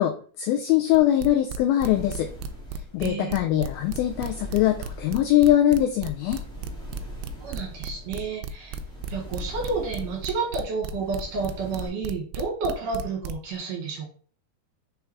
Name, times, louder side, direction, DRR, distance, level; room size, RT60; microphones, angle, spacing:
voice 1, 0.0-2.3 2.9-6.4, left 12 dB, 85° left, 4 dB, 2.1 m, -22 dB
sound 1, 0.9-13.6, right 6 dB, 85° right, 2.6 m, -34 dB
sound 2, 1.9-11.9, right 1 dB, 5° left, 0.9 m, -41 dB
voice 2, 3.0-3.4 7.4-8.8 9.1-14.1, right 4 dB, 60° right, -2 dB, 2.9 m, -30 dB
6.6 x 3.5 x 4.7 m, 0.43 s
omnidirectional pair, 4.8 m